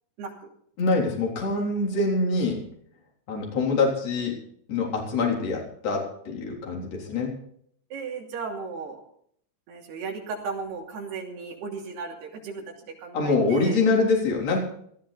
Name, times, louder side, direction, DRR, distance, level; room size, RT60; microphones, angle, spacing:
voice 1, 0.2-0.5 7.9-9.0 9.7-13.8, right 5 dB, 70° right, 0 dB, 4.8 m, -35 dB
voice 2, 0.8-2.6 3.3-4.3 4.7-7.3 13.1-14.6, left 3 dB, 40° left, -1 dB, 4.3 m, -24 dB
18.5 x 13.5 x 4.1 m, 0.66 s
omnidirectional pair, 4.9 m